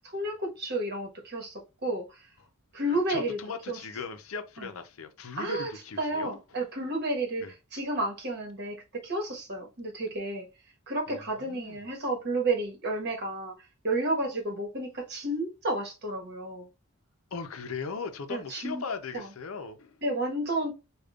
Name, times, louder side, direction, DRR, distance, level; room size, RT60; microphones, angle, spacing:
voice 1, 0.0-2.3 2.7-3.4 3.7-3.8 4.6-4.7 5.4-5.7 6.0-10.5 10.9-16.7 18.3-18.8 19.1-19.3 20.0-20.7, right 2 dB, 50° right, 1.2 m, -31 dB
voice 2, 3.1-6.4 7.4-7.5 11.1-11.8 17.3-20.0, left 4 dB, 70° left, 0.6 m, -38 dB
5.1 x 2.3 x 2.3 m
head